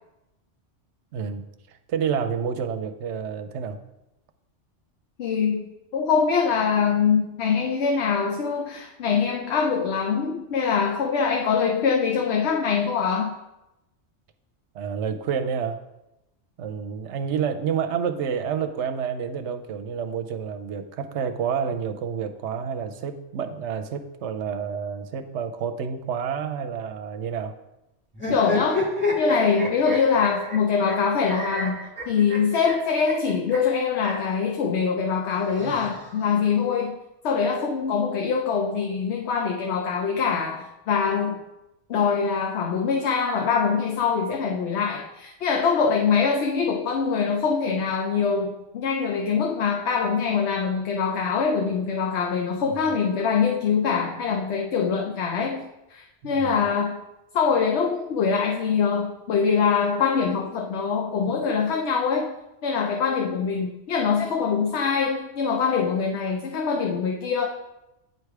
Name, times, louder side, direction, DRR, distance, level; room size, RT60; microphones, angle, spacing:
voice 1, 1.1-3.8 14.7-15.8 16.6-27.5 52.6-52.7 56.2-56.6, right 7 dB, 70° right, 8 dB, 0.8 m, -29 dB
voice 2, 5.2-13.3 28.3-28.8 29.2-37.0 37.2-41.5 41.9-57.0 57.3-62.3 62.6-67.5, left 6 dB, 65° left, 1 dB, 0.9 m, -24 dB
sound 1, 28.1-34.3 35.3-36.4, left 2 dB, 10° left, 1.6 m, -30 dB
9.3 x 3.3 x 4.6 m, 0.94 s
omnidirectional pair, 1.3 m